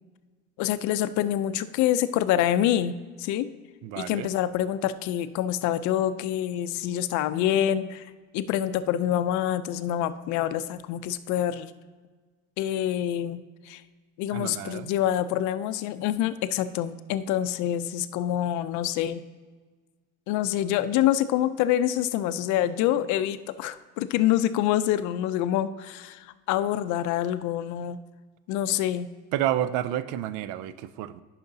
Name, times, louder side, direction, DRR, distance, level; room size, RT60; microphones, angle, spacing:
voice 1, 0.6-3.5 4.0-11.7 12.6-13.8 14.2-19.2 20.3-28.0 28.5-29.1, left 11 dB, 65° left, 13 dB, 0.5 m, -26 dB
voice 2, 3.8-4.3 14.3-14.9 29.3-31.2, right 12 dB, 75° right, 15 dB, 0.4 m, -30 dB
10.5 x 5.8 x 2.7 m, 1.4 s
cardioid pair, 135°, 31 cm